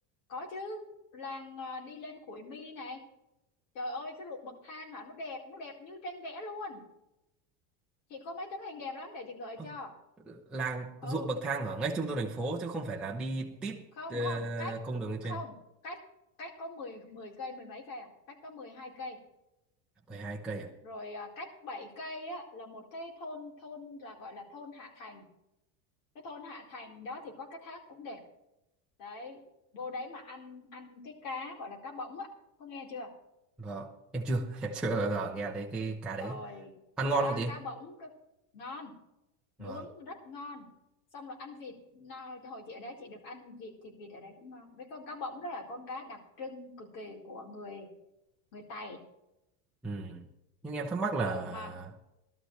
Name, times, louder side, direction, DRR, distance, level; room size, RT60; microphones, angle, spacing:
voice 1, 0.3-0.8 1.1-3.0 3.7-6.8 8.1-9.9 11.0-11.4 13.9-14.7 15.2-15.6 15.8-16.0 16.4-19.2 20.8-25.2 26.2-28.2 29.0-29.4 29.7-32.3 32.6-33.1 36.1-36.7 37.1-38.1 38.5-38.9 39.6-40.7 41.1-47.9 48.5-49.0 51.2-51.7, left 2 dB, 65° left, 4.2 m, -42 dB
voice 2, 10.3-13.8 14.1-15.4 20.1-20.7 33.6-36.4 37.0-37.5 39.6-39.8 49.8-50.2 50.6-51.9, right 3 dB, ahead, 0.6 m, -34 dB
19.0 x 12.5 x 3.2 m
cardioid pair, 175°, 40 cm